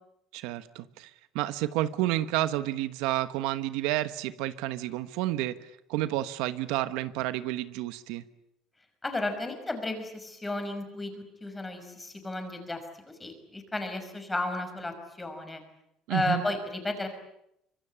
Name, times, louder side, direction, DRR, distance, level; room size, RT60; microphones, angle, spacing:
voice 1, 0.3-8.2 16.1-16.4, right 15 dB, 90° right, 13 dB, 1.2 m, -30 dB
voice 2, 9.0-11.1 11.4-12.8 13.1-15.6 16.1-17.1, left 2 dB, 10° left, 6 dB, 5.7 m, -33 dB
25.0 x 23.0 x 8.7 m, 0.79 s
cardioid pair, 135°, 0 cm